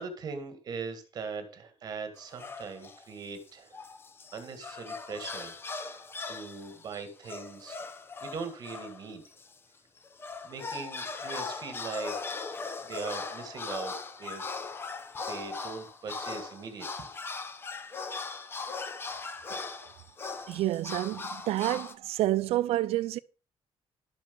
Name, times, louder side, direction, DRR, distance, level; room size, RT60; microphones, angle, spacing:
voice 1, 0.0-3.8 4.3-6.0 6.3-7.8 8.2-9.3 10.4-12.1 12.8-14.8 15.3-17.1, right 5 dB, 40° right, 2.1 m, -40 dB
sound 1, 2.2-3.0 3.5-9.5 10.0-21.9, left 4 dB, 25° left, 0.9 m, -39 dB
voice 2, 20.5-23.2, right 15 dB, 80° right, 0.6 m, -29 dB
12.0 x 5.2 x 7.0 m
cardioid pair, 170°, 10 cm